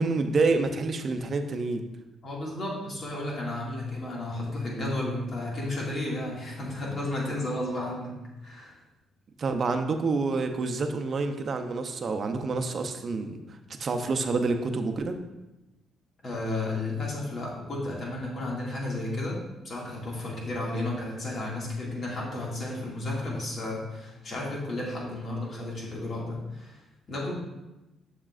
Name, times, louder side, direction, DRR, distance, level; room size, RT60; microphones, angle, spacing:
voice 1, 0.0-1.8 9.4-13.4 13.8-15.2, right 3 dB, 45° right, 7 dB, 0.7 m, -27 dB
voice 2, 2.2-8.1 8.4-8.8 16.2-19.4 19.6-26.8 27.1-27.3, left 2 dB, 50° left, -3 dB, 2.2 m, -33 dB
7.2 x 6.6 x 2.5 m, 1.0 s
cardioid pair, 90°, 0 cm